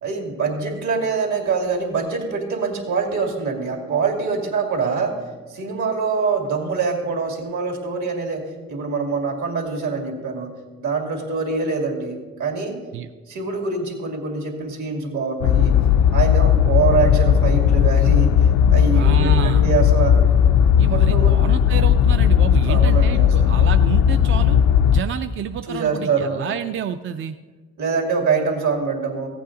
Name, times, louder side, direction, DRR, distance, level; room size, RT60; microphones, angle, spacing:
voice 1, 0.0-5.2 5.5-10.5 10.8-12.8 13.3-15.8 16.1-20.2 20.9-21.4 22.7-23.6 25.7-26.5 27.8-29.3, right 4 dB, 70° right, 2 dB, 2.3 m, -24 dB
sound 1, 15.4-25.0, left 8 dB, 80° left, 0.5 m, -16 dB
voice 2, 18.9-19.7 20.8-24.6 24.9-27.4, right 8 dB, 40° right, 8 dB, 0.4 m, -29 dB
15.0 x 8.4 x 3.8 m, 1.4 s
cardioid pair, 90°, 30 cm